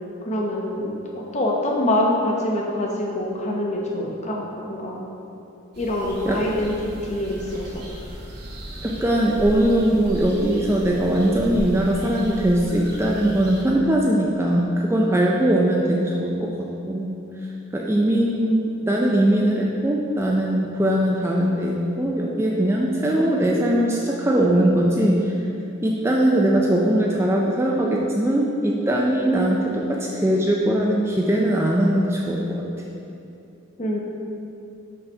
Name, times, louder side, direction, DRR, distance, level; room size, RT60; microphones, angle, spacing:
voice 1, 0.2-5.1 5.8-6.7 7.0-7.9 33.8-34.0, left 1 dB, 35° left, -2 dB, 0.8 m, -25 dB
sound 1, 5.7-13.6, equal, 50° right, 1.0 m, -35 dB
voice 2, 8.8-16.5 16.9-17.2 17.7-25.3 25.8-32.4, right 1 dB, 10° right, -2 dB, 0.4 m, -20 dB
5.6 x 4.1 x 5.4 m, 2.7 s
head